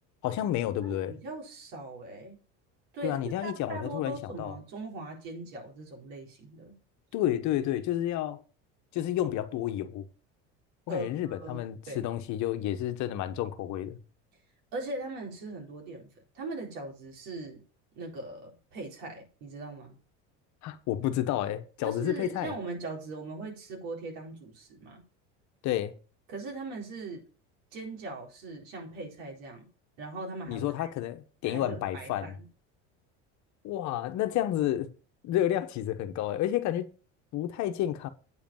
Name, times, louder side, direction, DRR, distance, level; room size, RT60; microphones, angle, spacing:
voice 1, 0.2-1.2 3.0-4.6 7.1-8.4 8.9-10.1 10.9-14.0 20.6-22.5 25.6-26.0 30.5-32.4 33.6-34.9 35.2-36.9 37.3-38.1, left 12 dB, 55° left, 1.2 m, -30 dB
voice 2, 0.8-2.4 2.9-6.7 10.9-11.6 11.9-12.0 14.7-16.1 16.3-17.6 18.0-20.0 21.8-25.0 26.3-27.2 27.7-29.7 30.0-30.9 31.4-32.3, right 2 dB, 75° right, 4.3 m, -40 dB
8.7 x 5.1 x 7.0 m
supercardioid pair, 120°, 34 cm